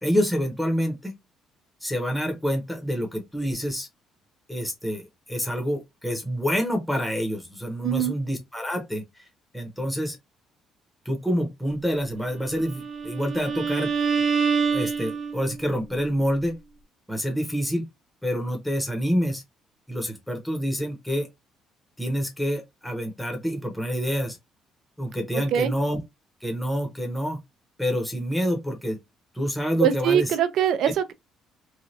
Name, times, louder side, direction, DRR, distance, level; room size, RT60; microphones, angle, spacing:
voice 1, 0.0-1.1 1.8-3.9 4.5-9.0 9.5-10.2 11.1-13.9 14.7-16.6 17.1-17.9 18.2-19.4 19.9-21.3 22.0-24.4 25.0-26.0 26.4-27.4 27.8-29.0 29.3-30.4, equal, 5° left, 0.8 m, -27 dB
Bowed string instrument, 12.5-15.6, right 5 dB, 50° right, 0.9 m, -26 dB
voice 2, 29.8-31.1, right 9 dB, 65° right, 0.5 m, -22 dB
3.1 x 2.2 x 2.7 m
cardioid pair, 145°, 0 cm